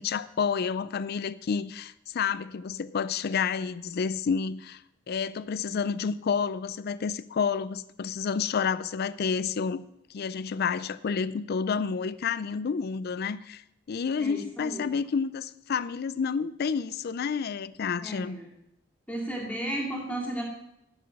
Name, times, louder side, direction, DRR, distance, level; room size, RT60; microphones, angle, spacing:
voice 1, 0.0-4.8 5.1-9.8 10.1-13.6 13.9-18.4, left 6 dB, 50° left, 17 dB, 0.4 m, -29 dB
voice 2, 14.2-15.0 18.0-18.5 19.1-20.5, right 1 dB, 5° left, -2 dB, 2.2 m, -34 dB
10.5 x 6.0 x 6.2 m, 0.84 s
head